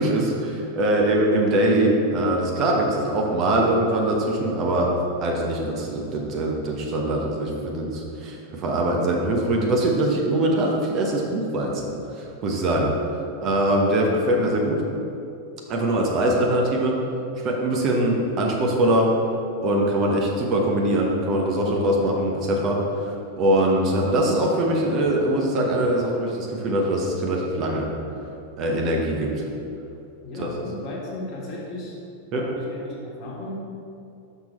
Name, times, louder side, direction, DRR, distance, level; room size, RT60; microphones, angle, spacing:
voice 1, 0.0-4.9 5.2-12.9 13.4-14.8 15.7-17.0 17.4-19.1 19.6-23.1 23.4-27.9 28.6-29.3 30.4-30.5 32.3-32.4, right 1 dB, 35° right, -1 dB, 1.0 m, -22 dB
voice 2, 30.2-32.0 32.3-33.5, left 2 dB, 35° left, -3 dB, 1.5 m, -35 dB
6.1 x 5.9 x 4.3 m, 2.7 s
figure-of-eight pair, 90°, 0 cm